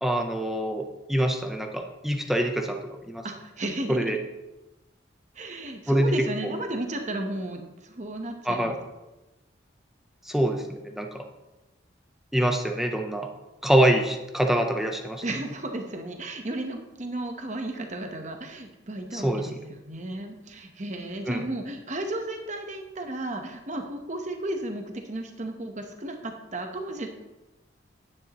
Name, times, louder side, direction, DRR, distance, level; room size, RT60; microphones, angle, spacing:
voice 1, 0.0-2.8 3.1-3.2 3.9-4.2 5.9-6.1 8.5-8.8 10.3-11.2 12.3-13.3 13.6-15.2 19.1-19.5 21.3-21.4, right 1 dB, ahead, 4 dB, 0.7 m, -25 dB
voice 2, 3.2-4.2 5.3-8.8 15.2-19.6 19.8-27.1, right 1 dB, 40° right, 4 dB, 1.0 m, -34 dB
9.9 x 9.7 x 3.0 m, 1.0 s
head